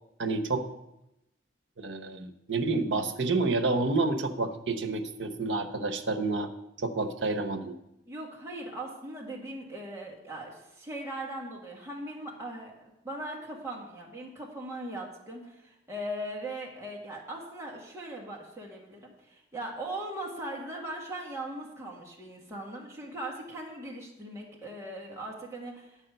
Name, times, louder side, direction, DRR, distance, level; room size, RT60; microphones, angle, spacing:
voice 1, 0.2-0.7 1.8-6.5 6.8-7.8, right 3 dB, 85° right, 6 dB, 0.9 m, -29 dB
voice 2, 8.1-26.1, right 1 dB, 15° right, -3 dB, 1.6 m, -39 dB
10.0 x 4.8 x 7.8 m, 0.90 s
head